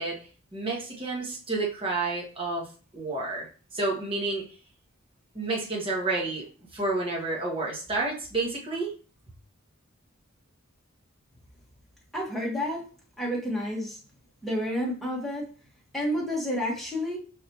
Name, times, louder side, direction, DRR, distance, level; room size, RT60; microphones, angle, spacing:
voice 1, 0.0-4.4 5.3-6.5 6.7-8.9, right 3 dB, 25° right, 1.3 m, -30 dB
voice 2, 12.1-12.9 13.2-14.0 14.4-15.5 15.9-17.2, equal, ahead, 1.3 m, -30 dB
4.6 x 3.5 x 2.9 m
head